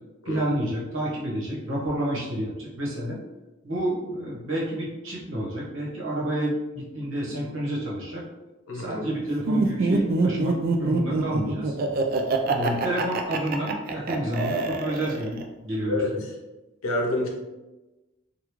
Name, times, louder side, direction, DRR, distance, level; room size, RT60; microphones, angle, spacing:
voice 1, 0.2-3.2 3.6-8.2 8.7-11.7 12.5-16.3, right 1 dB, 70° right, -5 dB, 1.0 m, -29 dB
voice 2, 8.7-9.1 15.8-16.1 16.8-17.3, left 2 dB, 85° left, 1 dB, 0.7 m, -27 dB
Laughter, 9.5-15.4, right 3 dB, 45° right, 0.3 m, -25 dB
3.4 x 2.3 x 3.0 m, 1.1 s
head